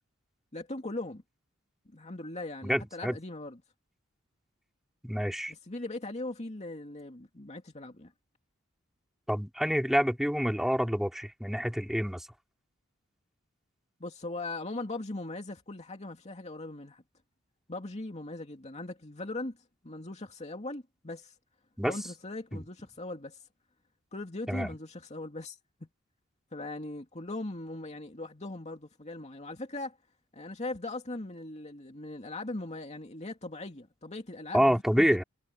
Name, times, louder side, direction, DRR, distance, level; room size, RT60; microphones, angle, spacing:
voice 1, 0.5-1.2 1.9-3.6 5.5-8.1 14.0-17.0 17.7-19.6 19.8-21.3 21.9-23.4 24.1-25.6 26.5-30.0 30.3-35.2, left 2 dB, 35° left, 2.5 m, -39 dB
voice 2, 2.6-3.2 5.0-5.5 9.3-12.3 21.8-21.9 22.5-22.6 24.5-24.7 34.5-35.2, equal, ahead, 4.2 m, -27 dB
head